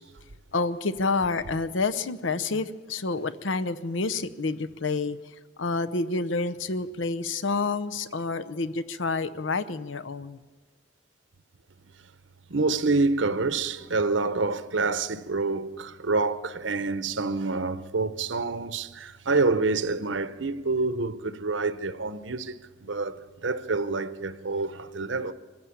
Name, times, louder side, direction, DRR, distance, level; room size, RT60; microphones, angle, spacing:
voice 1, 0.5-5.2 5.6-10.4, left 3 dB, 85° left, 0.8 m, -28 dB
voice 2, 12.5-25.3, right 3 dB, 80° right, 0.9 m, -27 dB
24.0 x 15.0 x 8.6 m
head